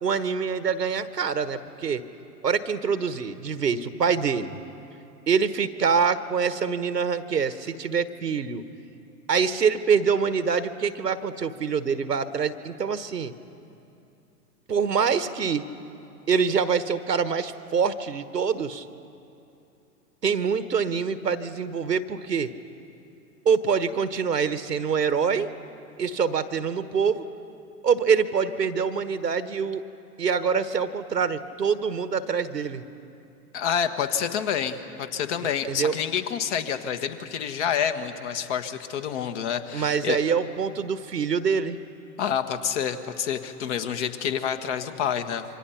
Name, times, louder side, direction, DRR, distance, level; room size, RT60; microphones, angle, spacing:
voice 1, 0.0-2.0 2.4-4.6 5.3-8.6 9.3-13.3 14.7-15.7 16.3-18.8 20.2-22.5 23.4-25.5 26.0-27.2 27.8-29.8 30.2-32.8 35.6-36.0 39.7-41.8, right 6 dB, 90° right, 13 dB, 1.2 m, -25 dB
voice 2, 33.5-40.2 42.2-45.4, left 8 dB, 45° left, 8 dB, 1.6 m, -28 dB
27.5 x 24.5 x 5.8 m, 2.8 s
figure-of-eight pair, 110°, 47 cm